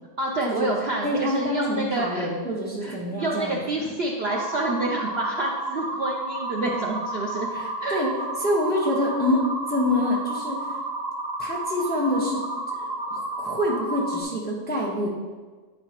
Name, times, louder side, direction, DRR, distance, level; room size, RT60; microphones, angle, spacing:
voice 1, 0.2-2.3 2.8-7.5 7.8-8.0, right 2 dB, 70° right, -1 dB, 0.6 m, -28 dB
voice 2, 1.0-3.9 7.5-8.1 8.4-10.6 11.4-12.4 13.1-15.1, left 1 dB, 5° left, -4 dB, 0.8 m, -26 dB
sound 1, 4.3-14.2, right 2 dB, 20° right, 0.6 m, -31 dB
9.5 x 4.8 x 2.9 m, 1.4 s
omnidirectional pair, 1.8 m